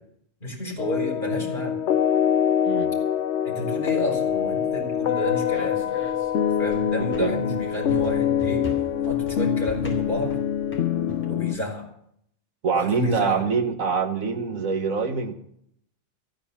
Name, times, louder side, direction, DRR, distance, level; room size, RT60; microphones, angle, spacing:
voice 1, 0.4-1.8 3.4-5.8 6.6-8.7 9.0-10.4 11.3-11.9 12.7-13.4, left 1 dB, 40° left, 0 dB, 4.7 m, -30 dB
sound 1, 0.8-11.6, left 9 dB, 65° left, 1.0 m, -24 dB
sound 2, 4.1-11.2, equal, 10° left, 4.6 m, -41 dB
voice 2, 7.0-7.3 12.6-15.3, right 5 dB, 85° right, 7 dB, 1.7 m, -25 dB
15.5 x 9.4 x 7.1 m, 0.71 s
omnidirectional pair, 1.4 m